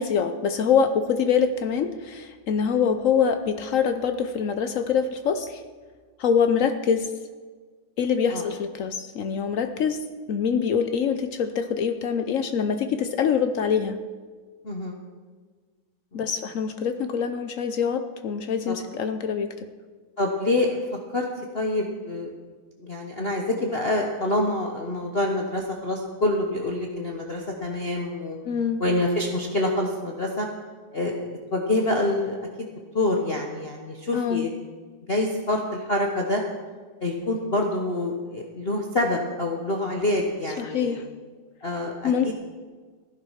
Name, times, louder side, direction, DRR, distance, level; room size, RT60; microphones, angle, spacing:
voice 1, 0.0-5.6 6.2-7.1 8.0-10.0 10.3-14.0 16.1-19.7 28.5-28.8 34.1-34.5 40.6-41.0 42.0-42.3, left 7 dB, 80° left, 8 dB, 0.7 m, -24 dB
voice 2, 14.6-15.0 16.1-16.3 18.7-18.8 20.2-20.8 21.1-21.2 21.5-22.3 22.8-28.4 28.8-30.5 30.9-32.4 32.9-34.5 35.1-36.4 37.0-41.0 41.6-42.3, left 2 dB, 35° left, 0 dB, 1.1 m, -26 dB
16.0 x 10.5 x 5.7 m, 1.5 s
omnidirectional pair, 2.3 m